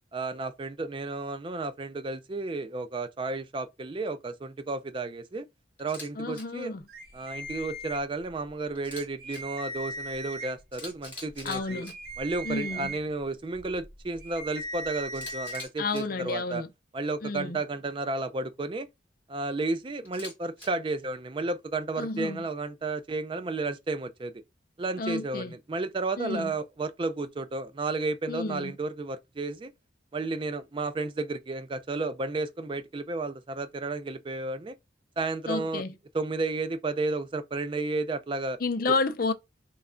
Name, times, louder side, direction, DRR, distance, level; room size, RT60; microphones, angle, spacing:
voice 1, 0.1-5.5 5.8-6.7 7.1-11.8 12.2-16.6 16.9-18.9 19.3-24.3 24.8-29.7 30.1-34.8 35.2-35.8 36.1-38.6, right 3 dB, 30° right, 0.4 m, -32 dB
Camera, 5.8-6.1 6.3-6.4 8.7-9.4 10.3-10.4 10.7-11.9 15.1-16.0 20.0-20.7, left 2 dB, 10° left, 1.7 m, -43 dB
voice 2, 6.2-6.9 11.4-11.9 12.4-13.0 15.8-16.7 17.2-17.6 22.0-22.5 25.0-25.6 26.2-26.5 28.3-28.7 35.5-35.9 38.6-39.3, left 3 dB, 50° left, 0.5 m, -31 dB
sound 1, 6.9-8.5 8.9-9.0 9.2-10.7 11.3-15.7, right 1 dB, 55° right, 0.9 m, -39 dB
3.2 x 2.3 x 3.7 m
head